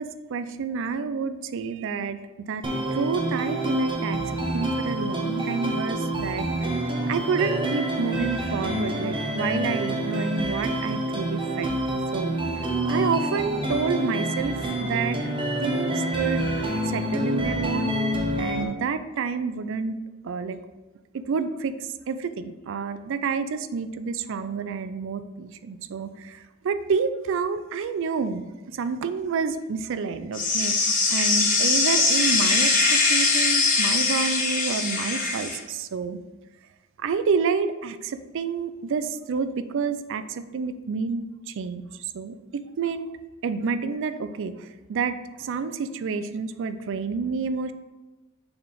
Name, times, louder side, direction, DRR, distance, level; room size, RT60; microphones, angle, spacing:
voice 1, 0.0-2.2 2.5-2.6 2.9-4.2 4.5-6.7 7.1-11.8 12.1-12.4 12.9-15.2 15.6-16.5 16.9-17.9 18.4-20.0 20.2-20.6 21.1-21.8 22.1-26.4 26.6-36.2 37.0-41.8 42.1-43.1 43.4-47.7, right 5 dB, 60° right, 11 dB, 0.4 m, -29 dB
sound 1, 2.6-18.6, right 1 dB, 25° right, 0.9 m, -27 dB
sound 2, 30.3-35.6, left 3 dB, 40° left, 1.3 m, -22 dB
6.7 x 4.0 x 3.8 m, 1.1 s
head